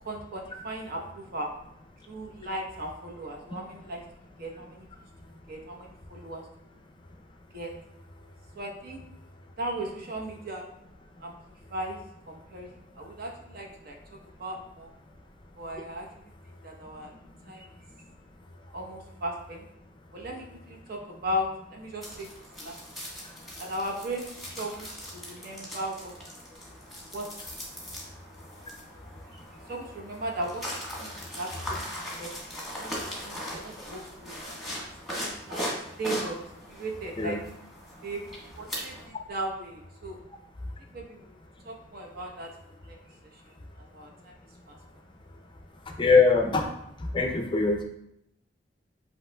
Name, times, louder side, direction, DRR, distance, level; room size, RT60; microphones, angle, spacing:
voice 1, 0.0-1.5 2.1-4.0 4.4-4.9 5.5-6.4 7.5-7.7 8.6-9.0 9.6-10.6 11.2-11.3 11.7-12.0 12.3-14.0 14.4-14.9 15.6-16.1 16.6-17.1 17.5-17.7 18.7-19.7 20.1-22.3 22.6-22.8 23.6-26.1 27.1-27.2 29.7-30.6 31.0-32.3 32.8-32.9 33.2-34.4 35.2-37.4 38.0-38.2 38.6-40.2 40.9-41.3 41.6-42.5 42.8-43.0 43.5-43.6 43.9-44.3 44.7-44.8, right 1 dB, 55° right, 0 dB, 0.8 m, -37 dB
sound 1, 22.0-39.1, equal, ahead, 1.2 m, -39 dB
voice 2, 46.0-46.7 47.0-47.8, left 4 dB, 25° left, 3 dB, 0.5 m, -22 dB
7.8 x 3.0 x 2.2 m, 0.78 s
head